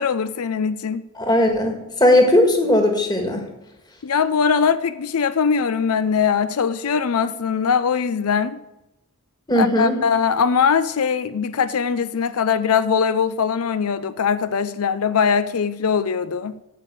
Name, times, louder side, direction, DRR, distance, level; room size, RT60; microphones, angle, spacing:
voice 1, 0.0-1.0 4.0-8.6 9.6-16.6, left 6 dB, 90° left, 14 dB, 0.5 m, -21 dB
voice 2, 1.2-3.4 9.5-9.9, left 1 dB, 20° left, 3 dB, 1.6 m, -17 dB
12.5 x 5.0 x 8.5 m, 0.92 s
head